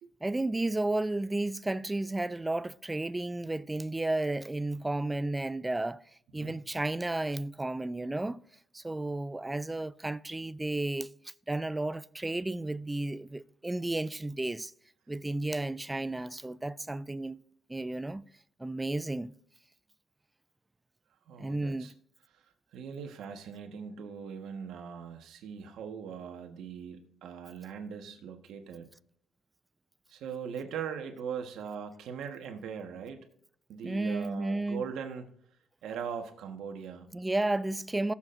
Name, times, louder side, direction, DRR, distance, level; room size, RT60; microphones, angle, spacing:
voice 1, 0.2-6.0 6.3-8.4 8.7-11.1 11.5-14.7 15.1-17.4 17.7-18.3 18.6-19.3 21.4-21.9 33.8-34.8 37.1-38.1, right 2 dB, 15° right, 0.4 m, -32 dB
voice 2, 21.3-21.9 22.7-28.9 30.1-33.2 33.7-35.3 35.8-37.1, right 7 dB, 80° right, 1.3 m, -40 dB
18.5 x 7.2 x 2.6 m
cardioid pair, 90°, 0 cm